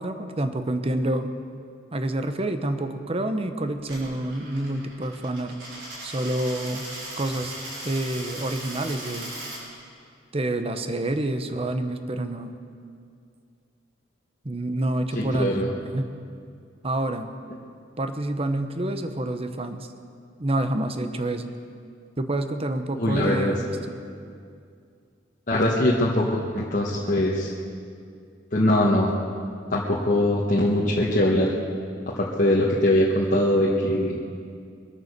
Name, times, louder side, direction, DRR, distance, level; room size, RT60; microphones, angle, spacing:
voice 1, 0.0-1.3 1.9-5.6 6.0-6.9 7.2-7.5 7.8-9.3 10.3-12.6 14.4-16.1 16.8-17.3 18.0-19.9 20.4-21.5 22.2-23.8, right 1 dB, 30° right, 8 dB, 0.9 m, -28 dB
Coin (dropping), 3.8-9.6, right 1 dB, 65° right, 5.2 m, -38 dB
voice 2, 15.1-15.7 23.0-23.5 25.5-27.5 28.5-29.1 29.7-31.5 32.1-34.2, left 1 dB, 45° left, -5 dB, 1.4 m, -22 dB
23.0 x 8.9 x 6.7 m, 2.3 s
head